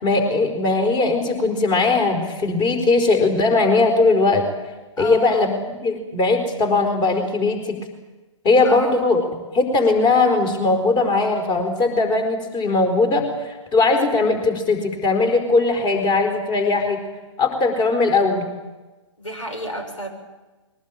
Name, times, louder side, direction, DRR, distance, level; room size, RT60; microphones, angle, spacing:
voice 1, 0.0-4.4 5.0-7.7 8.4-9.2 9.5-17.0 17.4-18.5, left 3 dB, 25° left, 6 dB, 4.4 m, -19 dB
voice 2, 5.0-5.5 8.6-8.9 19.2-20.1, right 1 dB, 80° left, 5 dB, 6.9 m, -30 dB
22.0 x 19.5 x 9.2 m, 1.2 s
figure-of-eight pair, 125°, 16 cm